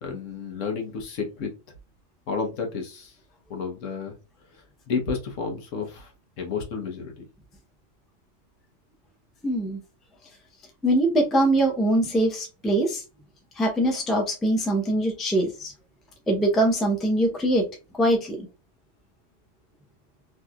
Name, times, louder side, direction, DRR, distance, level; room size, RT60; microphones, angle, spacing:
voice 1, 0.0-1.5 2.3-3.2 3.5-4.2 4.5-6.1 6.4-7.2, left 5 dB, 75° left, 3 dB, 1.2 m, -31 dB
voice 2, 9.4-9.8 10.8-13.0 13.6-15.7 16.3-17.7 18.0-18.5, right 1 dB, ahead, 2 dB, 0.5 m, -23 dB
3.1 x 2.7 x 2.3 m, 0.30 s
omnidirectional pair, 1.3 m